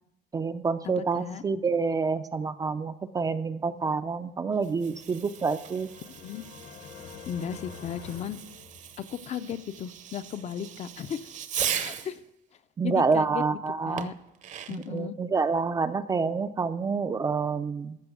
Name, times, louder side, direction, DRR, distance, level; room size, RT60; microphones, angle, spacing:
voice 1, 0.3-5.9 12.8-14.1 14.7-18.0, right 4 dB, 20° right, 10 dB, 0.4 m, -28 dB
voice 2, 0.8-1.4 6.2-6.4 7.3-8.4 9.0-11.3 11.7-12.2 12.8-13.4 13.9-14.1 14.7-15.2, left 9 dB, 35° left, 12 dB, 0.5 m, -35 dB
Fireworks, 4.5-12.2 14.0-15.0, right 9 dB, 40° right, 0.7 m, -38 dB
sound 1, 4.9-9.3, left 6 dB, 65° left, 1.2 m, -47 dB
14.0 x 6.2 x 7.8 m, 0.83 s
cardioid pair, 165°, 18 cm